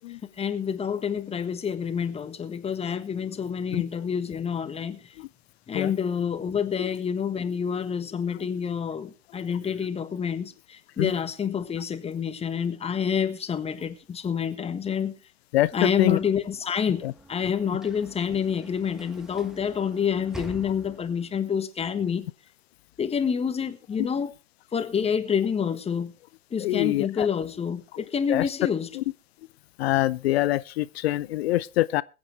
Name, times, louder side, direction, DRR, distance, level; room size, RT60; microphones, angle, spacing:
voice 1, 0.4-5.0 5.7-15.1 15.7-17.0 17.3-22.3 23.0-24.3 24.7-26.1 26.5-29.0, left 7 dB, 15° left, 1.4 m, -28 dB
Sliding door / Slam, 16.7-21.4, right 1 dB, ahead, 1.2 m, -46 dB
voice 2, 26.6-27.3 28.3-28.4 29.0-29.1 29.8-32.0, left 16 dB, 55° left, 0.5 m, -24 dB
21.5 x 8.7 x 3.3 m
hypercardioid pair, 100°, 37 cm